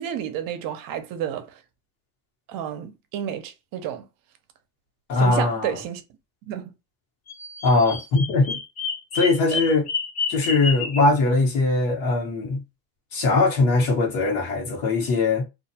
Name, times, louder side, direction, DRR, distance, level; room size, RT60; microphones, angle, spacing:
voice 1, 0.0-1.6 2.5-4.0 5.1-6.0 6.5-6.7 9.5-9.6, right 9 dB, 60° right, 0.7 m, -31 dB
voice 2, 5.1-5.8 7.6-8.6 9.1-9.9 10.3-12.6 13.1-15.4, left 3 dB, 60° left, 1.2 m, -21 dB
Bird vocalization bird call bird song, 7.3-11.1, left 5 dB, 40° left, 0.7 m, -30 dB
2.5 x 2.2 x 2.7 m
cardioid pair, 120°, 39 cm